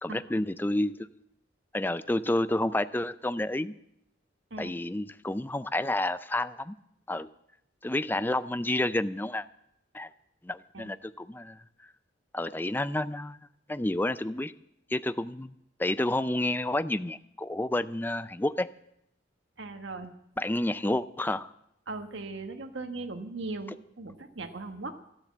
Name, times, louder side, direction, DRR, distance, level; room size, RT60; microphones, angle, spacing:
voice 1, 0.0-1.1 1.7-3.7 4.6-6.7 7.1-7.3 7.8-9.5 9.9-10.1 10.4-11.6 12.3-13.4 13.7-14.5 14.9-15.5 15.8-18.7 20.4-21.5, left 1 dB, 10° left, 14 dB, 0.5 m, -30 dB
voice 2, 19.6-20.1 21.9-25.0, right 3 dB, 75° right, 6 dB, 1.4 m, -38 dB
13.5 x 12.5 x 7.3 m, 0.77 s
head